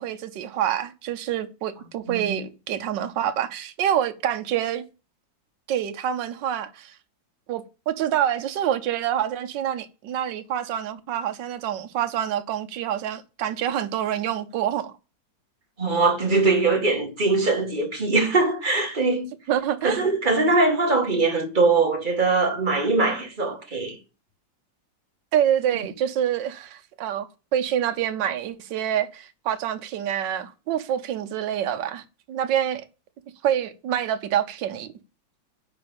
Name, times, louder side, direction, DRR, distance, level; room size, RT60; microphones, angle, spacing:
voice 1, 0.0-4.8 5.7-6.9 7.5-14.9 19.5-20.0 25.3-32.8 33.4-34.9, right 10 dB, 70° right, 1.4 m, -26 dB
voice 2, 2.1-2.4 15.8-19.3 19.8-24.0, right 3 dB, 25° right, 1.6 m, -22 dB
10.0 x 3.9 x 7.0 m
omnidirectional pair, 2.1 m